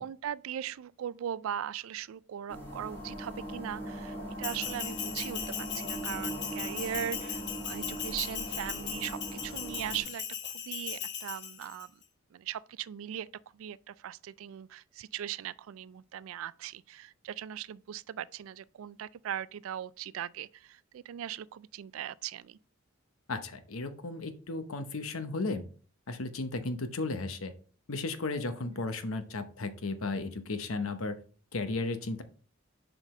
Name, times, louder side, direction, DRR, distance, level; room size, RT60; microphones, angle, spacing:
voice 1, 0.0-5.4 5.7-11.9 12.3-13.3 13.5-22.6 28.6-28.8, right 10 dB, 80° right, 0.3 m, -39 dB
sound 1, 2.5-10.0, right 1 dB, 10° left, 3.4 m, -40 dB
Bell, 4.4-11.9, left 9 dB, 55° left, 0.8 m, -38 dB
voice 2, 23.3-25.6 26.1-27.5 27.9-31.2 31.5-32.2, left 3 dB, 85° left, 0.9 m, -34 dB
7.4 x 5.0 x 3.1 m
head